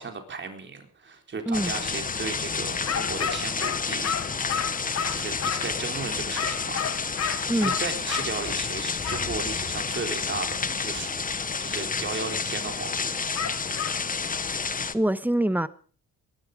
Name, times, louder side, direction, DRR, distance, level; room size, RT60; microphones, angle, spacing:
voice 1, 0.0-4.1 5.1-6.8 7.6-11.1 11.6-13.3, right 4 dB, 40° right, 3.9 m, -35 dB
sound 1, 1.5-14.9, left 5 dB, 30° left, 1.2 m, -30 dB
sound 2, 2.9-5.8 6.4-8.3 9.0-9.3 13.4-14.0, left 7 dB, 55° left, 1.5 m, -31 dB
voice 2, 14.9-15.7, right 1 dB, 5° right, 1.2 m, -25 dB
21.5 x 12.0 x 5.2 m
cardioid pair, 90°, 30 cm